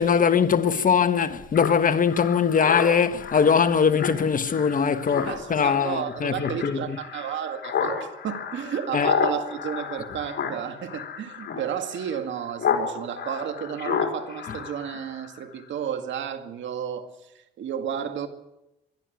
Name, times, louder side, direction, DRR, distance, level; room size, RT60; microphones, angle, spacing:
voice 1, 0.0-7.0 8.9-9.1 14.5-14.6, left 6 dB, 45° left, 1.4 m, -21 dB
Speech synthesizer, 1.5-12.9 13.1-15.4, left 7 dB, 60° left, 4.4 m, -31 dB
voice 2, 5.3-17.1 17.6-18.3, right 8 dB, 70° right, 2.1 m, -32 dB
23.0 x 12.5 x 9.4 m
cardioid pair, 90°, 20 cm